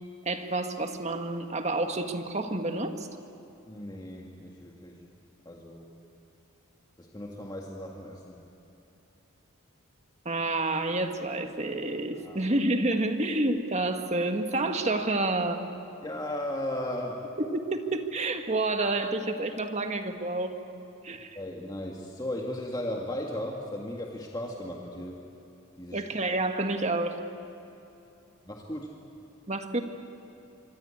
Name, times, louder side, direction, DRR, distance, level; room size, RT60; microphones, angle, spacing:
voice 1, 0.3-3.1 10.3-15.6 17.4-20.6 21.0-21.4 25.9-27.2 29.5-29.8, right 2 dB, 30° right, 6 dB, 1.6 m, -29 dB
voice 2, 3.7-5.0 5.5-5.9 7.0-8.5 12.1-12.5 16.0-17.3 21.3-25.2 25.8-26.0 28.4-28.9, left 1 dB, 20° left, -1 dB, 1.9 m, -36 dB
25.0 x 24.5 x 8.6 m, 2.9 s
head